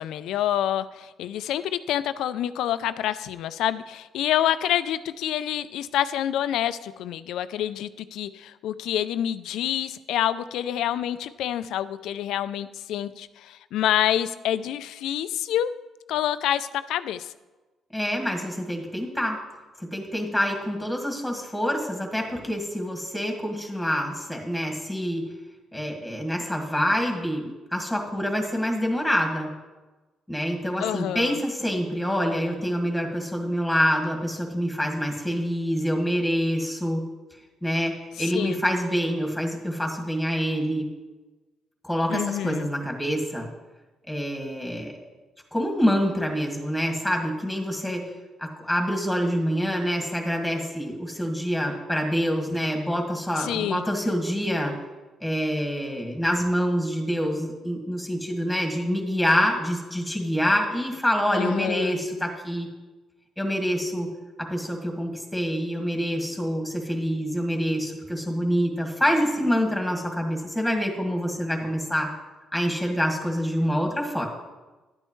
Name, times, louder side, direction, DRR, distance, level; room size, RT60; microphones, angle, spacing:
voice 1, 0.0-15.7 16.1-17.3 30.8-31.4 38.2-38.6 42.1-42.7 53.4-53.9 61.3-62.0, left 11 dB, 85° left, 13 dB, 0.4 m, -27 dB
voice 2, 17.9-19.4 19.8-25.2 25.7-27.4 27.7-29.5 30.3-37.0 37.6-40.9 41.8-43.5 44.1-45.0 45.5-48.0 48.4-54.7 55.2-62.7 63.4-64.1 64.4-72.1 72.5-74.2, equal, ahead, 1 dB, 1.8 m, -26 dB
11.5 x 8.8 x 3.1 m, 1.2 s
cardioid pair, 90°, 0 cm